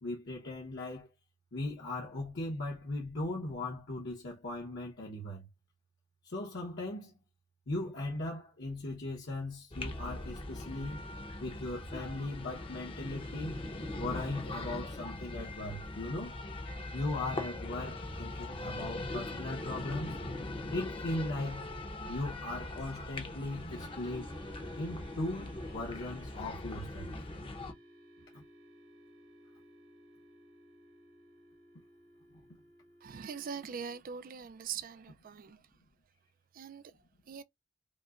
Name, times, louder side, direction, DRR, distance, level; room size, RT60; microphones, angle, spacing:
voice 1, 0.0-1.1 1.5-5.5 6.2-7.2 7.7-11.0 11.4-13.6 14.0-16.4 16.9-20.2 20.7-21.7 22.1-24.3 24.8-27.1 28.3-28.4 32.3-32.4, left 2 dB, 55° left, 0.9 m, -38 dB
sound 1, 9.7-27.7, left 2 dB, 25° left, 0.7 m, -41 dB
sound 2, 23.7-34.0, equal, 80° right, 1.6 m, -57 dB
voice 2, 33.0-35.6 36.5-37.0 37.3-37.4, right 7 dB, 45° right, 0.4 m, -42 dB
5.1 x 2.1 x 2.4 m
head